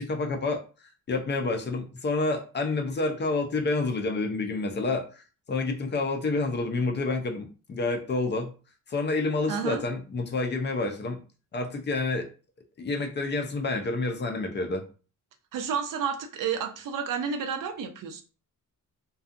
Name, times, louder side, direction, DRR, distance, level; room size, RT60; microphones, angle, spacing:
voice 1, 0.0-5.2 5.5-8.5 8.9-11.2 11.5-12.3 12.8-14.8, left 3 dB, 35° left, 4 dB, 0.5 m, -29 dB
voice 2, 9.5-9.8 15.5-18.2, right 7 dB, 80° right, 6 dB, 0.6 m, -31 dB
2.6 x 2.3 x 2.4 m, 0.36 s
wide cardioid pair, 140°, 32 cm